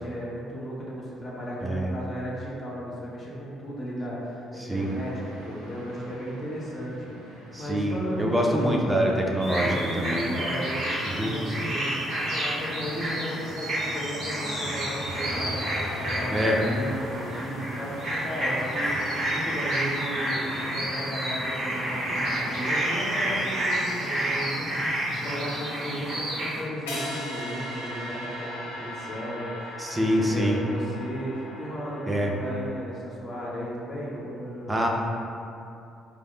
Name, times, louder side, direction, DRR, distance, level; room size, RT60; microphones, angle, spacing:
voice 1, 0.0-8.7 9.6-34.9, equal, 30° left, -6 dB, 0.7 m, -35 dB
voice 2, 1.6-1.9 4.6-4.9 7.5-10.3 11.0-11.4 16.3-16.6 29.8-30.6 32.1-32.3 34.7-34.9, equal, 15° right, 0 dB, 0.5 m, -25 dB
sound 1, 4.7-23.5, equal, 70° right, 0.4 m, -41 dB
sound 2, 9.4-26.6, right 1 dB, 50° right, 1.0 m, -30 dB
sound 3, 26.9-33.0, left 1 dB, 75° left, 0.5 m, -38 dB
4.8 x 2.1 x 2.3 m, 2.6 s
figure-of-eight pair, 45°, 0 cm